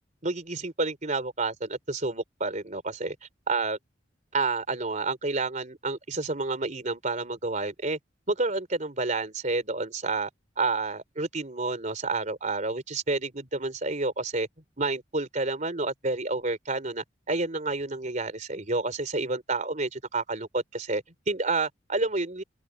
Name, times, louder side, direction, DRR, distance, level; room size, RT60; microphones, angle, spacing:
voice 1, 0.2-3.2 3.5-3.8 4.3-8.0 8.3-10.3 10.6-14.5 14.8-22.4, right 3 dB, 40° right, 3.8 m, -29 dB
open air
head